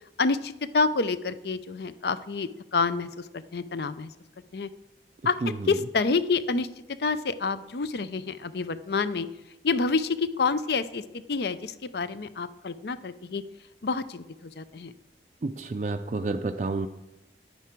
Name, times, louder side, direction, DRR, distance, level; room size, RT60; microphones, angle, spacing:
voice 1, 0.2-4.1 4.5-4.7 5.2-6.7 7.0-9.3 9.6-13.4 13.8-14.9, left 4 dB, 60° left, 14 dB, 0.5 m, -28 dB
voice 2, 15.4-16.9, right 3 dB, 40° right, 6 dB, 0.4 m, -29 dB
10.5 x 9.4 x 4.5 m, 0.95 s
head